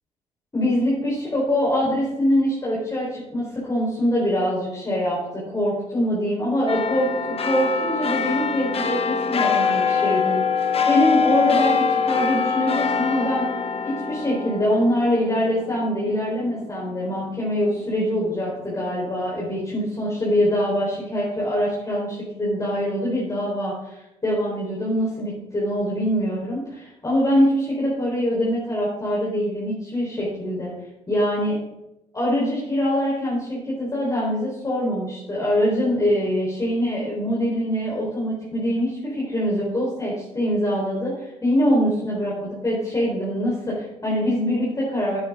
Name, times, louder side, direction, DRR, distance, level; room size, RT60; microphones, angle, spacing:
voice 1, 0.5-13.5 13.8-30.7 31.1-31.5 32.1-45.2, equal, 20° left, -6 dB, 4.4 m, -24 dB
sound 1, 6.7-17.4 17.9-18.0, left 6 dB, 40° left, 1.4 m, -24 dB
10.5 x 9.2 x 3.8 m, 0.93 s
supercardioid pair, 70°, 15 cm